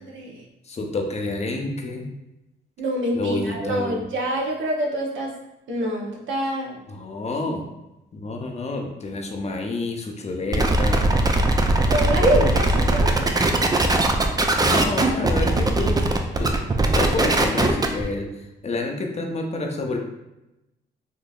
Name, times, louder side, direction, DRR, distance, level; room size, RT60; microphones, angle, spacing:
voice 1, 0.1-0.4 2.8-5.3 5.7-6.8 11.9-13.3, right 1 dB, 65° right, -1 dB, 0.9 m, -25 dB
voice 2, 0.6-2.1 3.1-4.0 6.9-7.7 8.1-11.2 14.7-16.0 16.4-16.5 16.9-20.0, left 2 dB, 30° left, 2 dB, 0.7 m, -28 dB
sound 1, 10.5-18.0, right 2 dB, 20° right, 0.4 m, -20 dB
3.7 x 2.6 x 2.4 m, 0.94 s
supercardioid pair, 60°, 21 cm